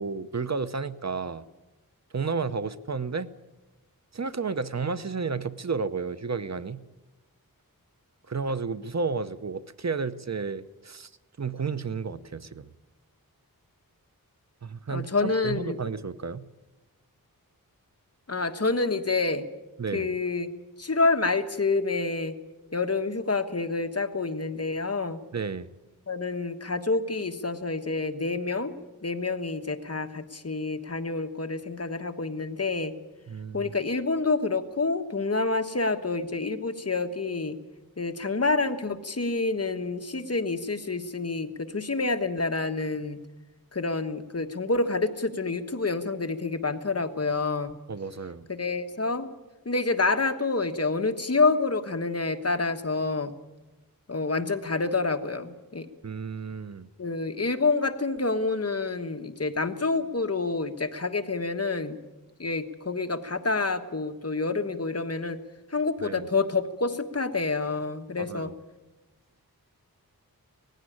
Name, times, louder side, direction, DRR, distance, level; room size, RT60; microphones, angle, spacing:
voice 1, 0.0-1.4 2.1-3.3 4.1-6.8 8.3-11.1 11.4-12.7 14.6-16.4 19.8-20.1 25.3-25.7 33.3-33.7 47.9-48.5 56.0-56.9 66.0-66.2 68.2-68.5, right 4 dB, 50° right, 14 dB, 0.8 m, -32 dB
voice 2, 14.9-15.8 18.3-19.5 19.9-20.5 20.8-22.4 22.7-25.2 26.1-28.7 29.0-33.0 33.5-37.6 38.0-43.2 43.7-47.8 48.5-49.3 49.6-53.3 54.1-55.9 57.0-62.0 62.4-65.4 65.7-68.5, left 3 dB, 40° left, 7 dB, 1.4 m, -28 dB
19.0 x 16.0 x 9.9 m, 1.1 s
wide cardioid pair, 75°, 36 cm